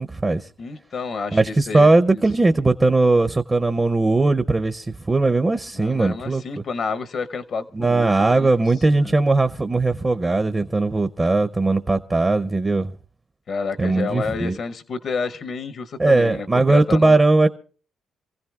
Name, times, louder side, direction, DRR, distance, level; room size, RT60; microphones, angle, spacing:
voice 1, 0.0-0.5 1.3-6.4 7.7-12.9 13.8-14.6 16.0-17.5, right 2 dB, 20° right, 0.6 m, -19 dB
voice 2, 0.6-2.2 5.7-8.5 9.0-9.1 13.5-17.2, left 5 dB, 55° left, 0.8 m, -30 dB
27.0 x 15.5 x 2.4 m
cardioid pair, 90°, 0 cm